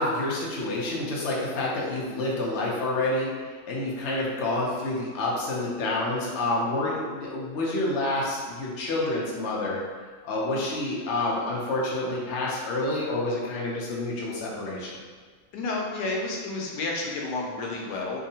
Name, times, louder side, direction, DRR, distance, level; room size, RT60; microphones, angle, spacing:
voice 1, 0.0-9.8 10.2-15.0, left 2 dB, 60° left, -4 dB, 0.8 m, -28 dB
voice 2, 15.5-18.2, left 2 dB, 85° left, -1 dB, 1.2 m, -30 dB
3.6 x 2.0 x 2.7 m, 1.5 s
omnidirectional pair, 1.7 m